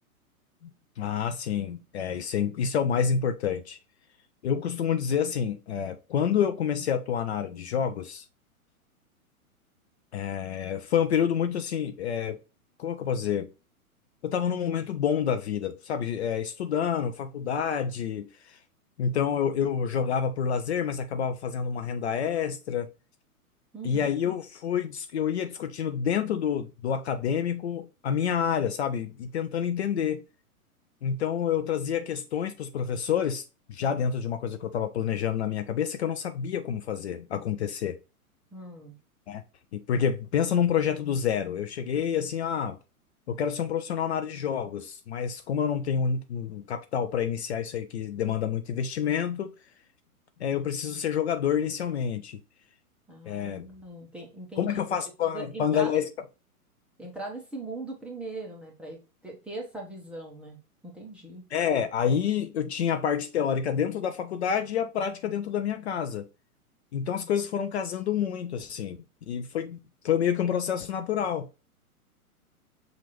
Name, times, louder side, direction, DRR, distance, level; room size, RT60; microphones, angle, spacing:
voice 1, 1.0-3.8 4.4-8.3 10.1-12.4 12.8-13.5 14.2-18.6 19.0-22.9 23.8-30.3 31.0-38.0 39.3-39.4 39.7-42.8 43.3-49.5 50.4-52.4 53.3-53.6 54.6-56.1 61.5-66.3 66.9-69.0 69.3-69.8 70.0-71.5, left 8 dB, 50° left, 0.5 m, -28 dB
voice 2, 23.7-24.1 38.5-38.9 53.1-54.8 55.3-56.0 57.0-60.6 60.8-61.4, right 2 dB, 5° right, 0.6 m, -40 dB
5.9 x 2.5 x 2.9 m
figure-of-eight pair, 120°, 44 cm